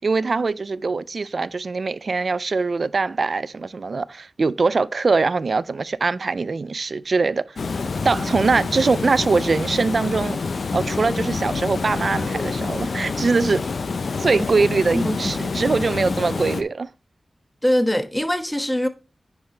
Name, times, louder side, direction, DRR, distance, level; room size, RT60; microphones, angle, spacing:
voice 1, 0.0-7.6 8.0-10.4 10.7-13.6 14.2-16.9, right 4 dB, 70° right, 0.3 m, -22 dB
Water, 7.6-16.6, left 4 dB, 80° left, 0.6 m, -27 dB
voice 2, 14.9-15.4 17.6-18.9, equal, 10° left, 1.1 m, -22 dB
9.5 x 5.7 x 3.2 m
cardioid pair, 55°, 0 cm